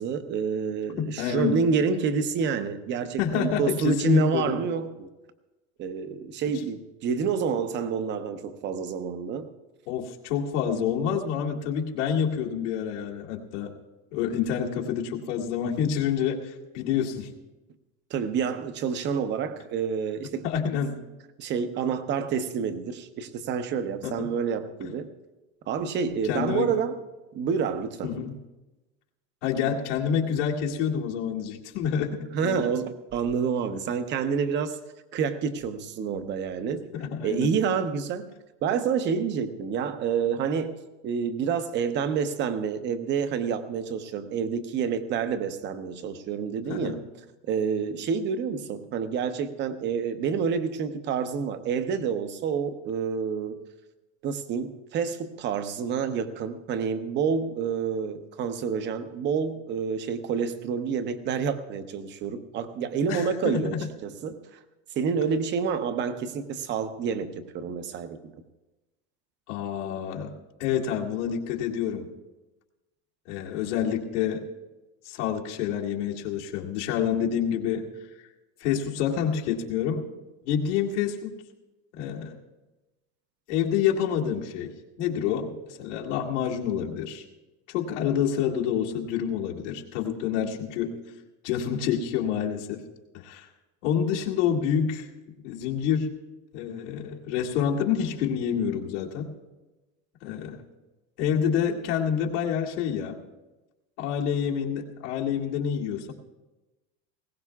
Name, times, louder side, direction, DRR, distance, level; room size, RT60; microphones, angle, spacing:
voice 1, 0.0-5.1 5.8-9.5 18.1-20.5 21.4-25.1 25.7-27.0 27.3-28.2 32.3-34.8 35.1-36.8 37.2-38.3 38.6-40.7 41.0-47.0 47.4-53.6 54.2-63.7 64.0-64.4 64.9-68.3, right 6 dB, 30° right, 9 dB, 0.9 m, -28 dB
voice 2, 1.0-1.6 3.2-4.6 9.9-13.8 14.1-17.3 20.4-21.0 24.0-24.3 26.2-26.7 28.0-28.3 29.4-32.6 36.9-37.5 46.7-47.0 63.1-63.9 69.5-70.3 70.6-72.1 73.3-74.4 75.1-77.9 78.6-80.1 80.5-81.3 82.0-82.4 83.5-84.7 85.0-87.2 87.7-91.0 91.4-92.8 93.2-93.5 93.8-95.1 95.4-96.1 96.5-99.3 100.2-100.6 101.2-103.2 104.0-106.1, left 8 dB, 80° left, -2 dB, 2.2 m, -28 dB
20.5 x 17.5 x 2.4 m, 1.1 s
supercardioid pair, 155°, 35 cm